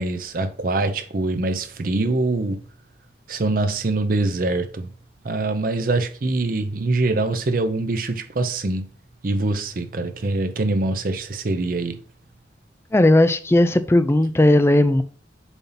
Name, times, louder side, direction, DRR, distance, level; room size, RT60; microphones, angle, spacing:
voice 1, 0.0-2.6 3.3-4.9 5.2-8.9 9.2-12.0, right 2 dB, 45° right, 0.6 m, -24 dB
voice 2, 12.9-15.0, left 1 dB, 15° left, 0.4 m, -16 dB
7.0 x 2.8 x 5.5 m
head